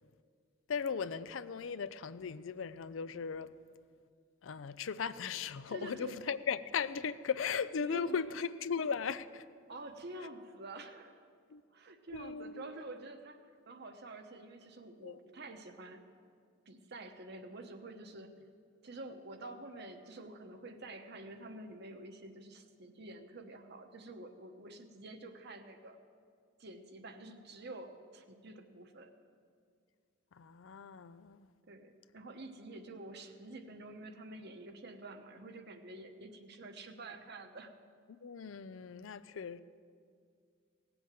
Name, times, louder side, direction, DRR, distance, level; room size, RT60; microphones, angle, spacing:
voice 1, 0.7-3.5 4.4-9.4 11.5-11.6 12.1-12.7 15.0-15.2 30.3-31.5 38.2-39.6, left 6 dB, 85° left, 0.5 m, -37 dB
voice 2, 5.7-6.2 7.8-8.2 9.7-11.2 11.7-16.0 16.7-18.3 18.8-26.0 26.6-29.1 31.7-37.7, right 2 dB, 60° right, 1.1 m, -48 dB
17.5 x 7.9 x 7.6 m
head